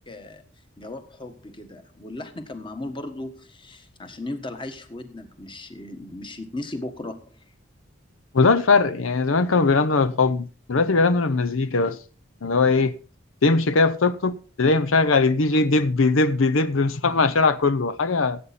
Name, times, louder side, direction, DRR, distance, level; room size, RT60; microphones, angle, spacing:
voice 1, 0.1-0.4 0.8-7.4, left 2 dB, 25° left, 1.5 m, -36 dB
voice 2, 8.3-12.0 12.4-12.9 13.4-18.4, left 3 dB, 85° left, 0.7 m, -20 dB
16.0 x 8.4 x 4.2 m
head